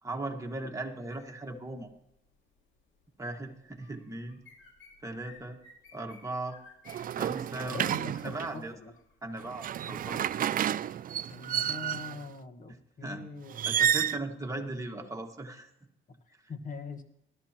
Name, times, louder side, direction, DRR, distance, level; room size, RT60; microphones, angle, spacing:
voice 1, 0.0-1.9 3.2-4.4 5.0-5.6 5.9-6.6 7.1-7.8 8.2-8.7 9.2-10.2 12.7-13.3 13.6-15.7 16.3-16.5, right 2 dB, 15° right, 2 dB, 1.8 m, -38 dB
sound 1, 1.1-10.5, left 4 dB, 70° left, 2.5 m, -58 dB
sound 2, 6.9-8.6 9.4-12.2 13.5-14.2, right 10 dB, 45° right, 0.4 m, -30 dB
voice 2, 7.6-8.9 11.3-13.6 16.1-17.0, left 4 dB, 40° left, 7 dB, 1.6 m, -43 dB
20.0 x 13.0 x 3.0 m, 0.82 s
cardioid pair, 90°, 20 cm